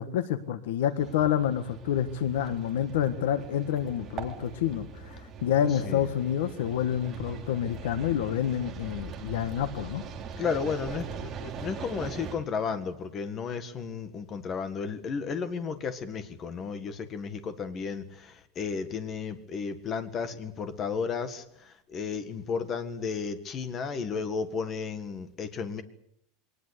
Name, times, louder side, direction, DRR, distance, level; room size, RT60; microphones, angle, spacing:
voice 1, 0.0-10.0, left 10 dB, 75° left, 11 dB, 1.5 m, -28 dB
sound 1, 1.0-12.4, right 5 dB, 20° right, 3.2 m, -41 dB
voice 2, 10.4-21.4 21.9-25.8, left 5 dB, 20° left, 10 dB, 1.7 m, -33 dB
23.5 x 19.5 x 8.2 m, 0.71 s
supercardioid pair, 180°, 0 cm